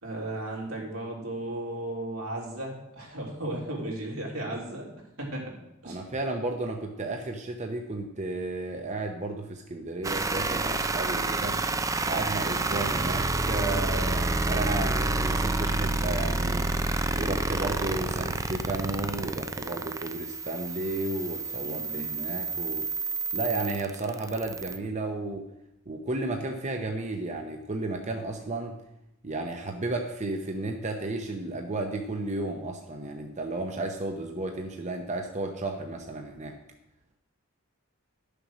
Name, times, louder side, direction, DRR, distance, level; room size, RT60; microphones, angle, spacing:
voice 1, 0.0-4.9 5.2-5.6 5.8-6.0 21.6-22.2, right 1 dB, 80° right, -2 dB, 3.4 m, -35 dB
voice 2, 5.8-11.6 12.0-16.7 17.1-22.9 23.3-25.4 25.9-28.8 29.2-36.5, right 2 dB, 35° right, 3 dB, 0.8 m, -33 dB
sound 1, 10.0-24.8, right 2 dB, 15° right, 0.5 m, -29 dB
11.0 x 6.8 x 6.2 m, 0.88 s
head